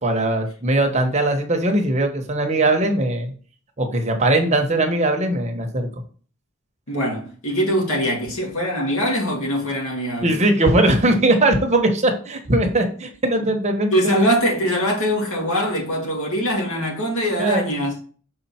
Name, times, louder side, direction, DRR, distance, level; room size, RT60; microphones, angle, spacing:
voice 1, 0.0-3.3 3.8-5.9 10.2-14.1 17.4-17.6, right 1 dB, 35° right, 1.1 m, -20 dB
voice 2, 6.9-10.4 13.9-18.0, equal, 75° left, 2.3 m, -22 dB
6.3 x 4.3 x 4.3 m
head